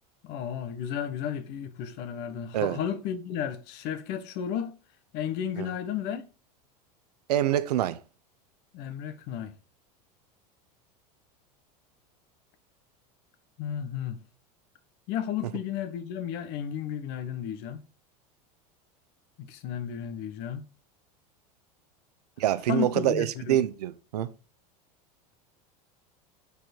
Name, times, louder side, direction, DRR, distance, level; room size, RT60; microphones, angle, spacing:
voice 1, 0.2-4.7 5.1-6.2 8.7-9.5 13.6-14.2 15.1-17.8 19.4-20.6 22.7-23.6, left 9 dB, 60° left, 1.2 m, -33 dB
voice 2, 7.3-8.0 22.4-24.3, right 12 dB, 85° right, 0.7 m, -26 dB
7.0 x 4.8 x 4.4 m
hypercardioid pair, 100°, 20 cm